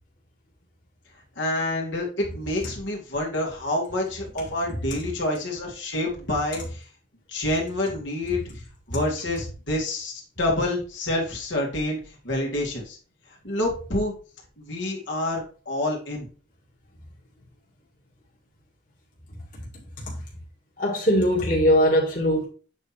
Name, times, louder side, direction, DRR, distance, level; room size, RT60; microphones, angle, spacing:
voice 1, 1.4-6.9 7.3-8.4 8.9-12.0 12.2-13.0 13.4-14.1 14.6-16.3, left 1 dB, 70° left, 2.5 m, -27 dB
voice 2, 19.5-20.2 20.8-22.4, equal, 45° left, 2.3 m, -22 dB
8.2 x 4.4 x 4.3 m
head